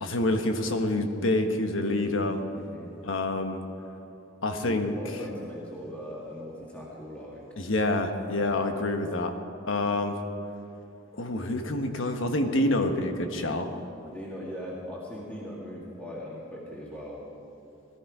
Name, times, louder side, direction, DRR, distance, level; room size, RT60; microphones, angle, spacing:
voice 1, 0.0-2.4 3.0-3.6 4.4-5.0 7.6-9.3 9.7-10.2 11.1-13.8, left 2 dB, 75° left, 5 dB, 1.3 m, -27 dB
voice 2, 1.8-2.2 2.5-2.9 4.6-7.4 8.3-8.7 14.1-17.2, equal, 5° left, -5 dB, 1.9 m, -40 dB
19.0 x 13.5 x 4.9 m, 2.9 s
head